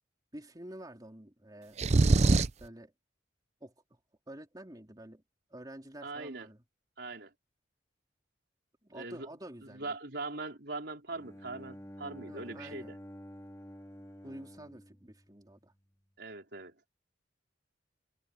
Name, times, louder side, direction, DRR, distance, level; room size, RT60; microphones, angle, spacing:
voice 1, 0.3-1.8 2.6-2.9 3.6-3.7 4.3-5.2 5.5-6.6 8.8-9.9 12.3-12.9 14.2-15.7, right 1 dB, 20° right, 3.5 m, -48 dB
Throat Noise, 1.8-2.7, right 3 dB, 35° right, 0.5 m, -23 dB
voice 2, 6.0-6.5 7.0-7.3 8.9-9.3 9.7-13.0 16.2-16.8, right 3 dB, 60° right, 4.6 m, -41 dB
Bowed string instrument, 11.1-15.9, equal, 15° left, 2.7 m, -50 dB
head